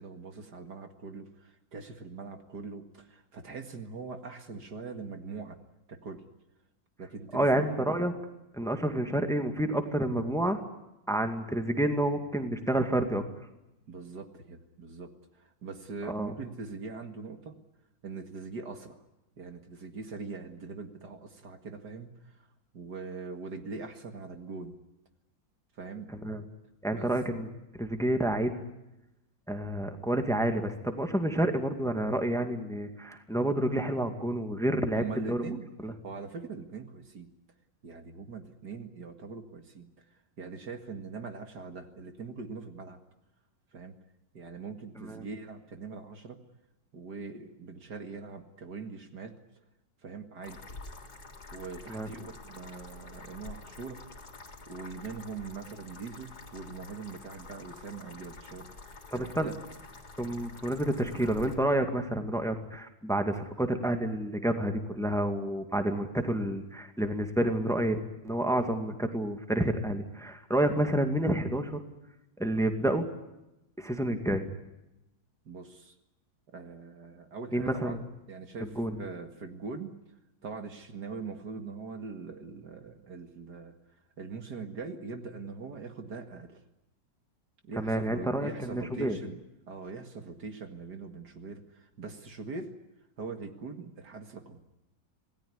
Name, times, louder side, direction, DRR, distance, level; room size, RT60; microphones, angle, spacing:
voice 1, 0.0-5.6 5.9-6.2 7.0-7.9 13.9-17.6 18.0-19.0 19.4-22.5 22.7-24.8 25.7-26.1 26.9-27.1 34.9-37.3 37.8-43.0 43.7-43.9 44.3-46.4 46.9-49.4 50.0-50.6 51.5-54.0 54.7-59.6 75.5-76.0 76.5-78.0 78.3-79.9 80.4-83.7 84.2-86.6 87.6-89.4 89.7-92.7 93.2-94.6, right 4 dB, 60° right, 6 dB, 2.5 m, -42 dB
voice 2, 7.3-8.1 8.5-10.6 11.1-13.2 16.1-16.3 26.2-26.4 26.8-27.5 27.8-28.5 29.5-35.6 35.8-35.9 45.0-45.2 51.9-52.1 59.1-59.5 60.2-68.0 68.2-71.8 72.4-73.1 73.8-74.4 77.5-78.0 78.6-79.0 87.8-89.2, right 1 dB, ahead, 6 dB, 2.1 m, -29 dB
sound 1, 50.4-61.6, left 3 dB, 55° left, 3.9 m, -48 dB
27.0 x 18.5 x 9.8 m, 0.93 s
omnidirectional pair, 2.0 m